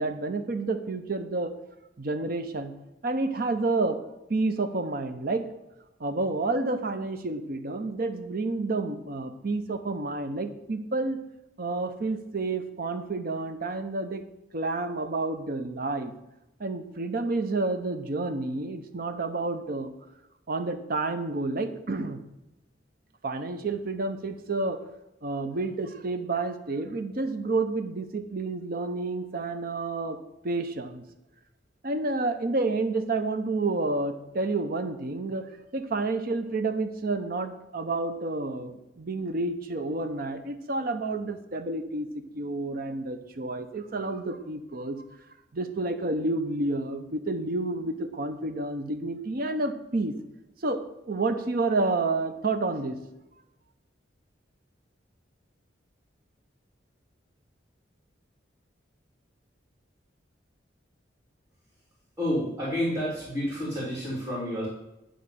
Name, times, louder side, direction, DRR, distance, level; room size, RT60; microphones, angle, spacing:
voice 1, 0.0-1.5 2.0-2.7 3.0-4.0 4.3-5.4 6.0-11.2 11.6-14.2 14.5-16.1 16.6-19.9 20.5-22.2 23.2-24.8 25.2-30.2 30.4-31.0 31.8-45.0 45.5-50.1 50.6-50.8 51.1-53.0, right 3 dB, 50° right, 8 dB, 0.7 m, -29 dB
voice 2, 62.2-64.7, equal, 10° right, -8 dB, 3.2 m, -29 dB
9.8 x 3.8 x 6.8 m, 0.92 s
head